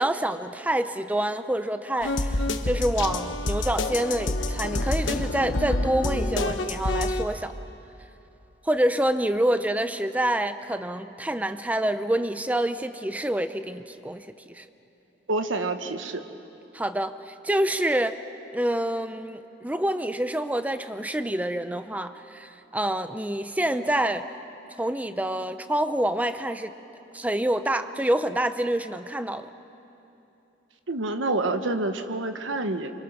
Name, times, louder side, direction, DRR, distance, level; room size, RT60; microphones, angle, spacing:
voice 1, 0.0-7.5 8.6-14.3 14.5-14.6 16.7-18.2 18.5-24.2 24.8-26.7 27.1-29.5, right 1 dB, 10° right, 10 dB, 0.6 m, -27 dB
sound 1, 2.0-7.2, left 2 dB, 75° left, 1.2 m, -27 dB
voice 2, 15.3-16.2 30.9-32.9, right 2 dB, 90° right, 7 dB, 1.3 m, -27 dB
27.0 x 24.5 x 6.1 m, 3.0 s
head